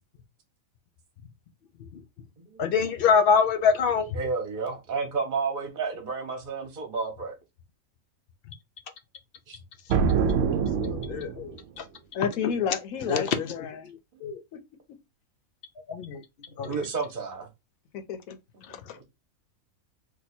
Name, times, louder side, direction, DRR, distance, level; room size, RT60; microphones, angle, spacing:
voice 1, 2.6-4.2 10.8-11.8 13.1-13.5 14.2-14.4 15.9-16.2 16.6-16.8, left 6 dB, 65° left, 0.5 m, -25 dB
voice 2, 4.1-7.4 9.5-9.6 16.6-17.5 18.7-19.0, right 4 dB, 40° right, 0.9 m, -31 dB
sound 1, 9.9-11.6, right 6 dB, 70° right, 0.9 m, -25 dB
voice 3, 12.1-13.9 14.5-14.6 17.9-19.0, left 7 dB, 85° left, 1.1 m, -32 dB
2.7 x 2.3 x 4.2 m
omnidirectional pair, 1.4 m